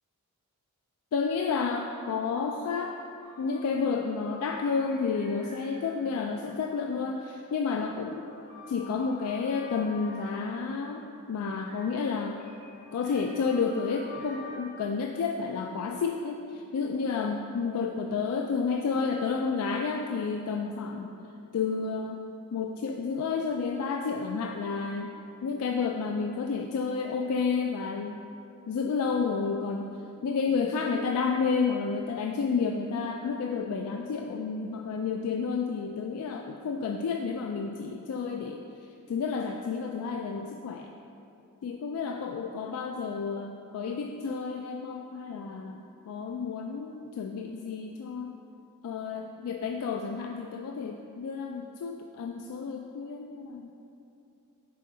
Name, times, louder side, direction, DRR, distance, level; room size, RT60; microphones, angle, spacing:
voice 1, 1.1-3.0 3.4-8.2 8.7-11.0 11.3-12.4 12.9-21.1 21.5-22.2 22.5-25.1 25.4-28.2 28.7-29.9 30.2-38.6 39.1-40.9 41.6-48.4 48.8-53.7, left 5 dB, 85° left, 3 dB, 0.3 m, -31 dB
sound 1, 3.2-7.0 7.7-10.8 11.7-14.7, left 3 dB, 35° left, 1.5 m, -49 dB
5.6 x 4.2 x 5.0 m, 2.7 s
head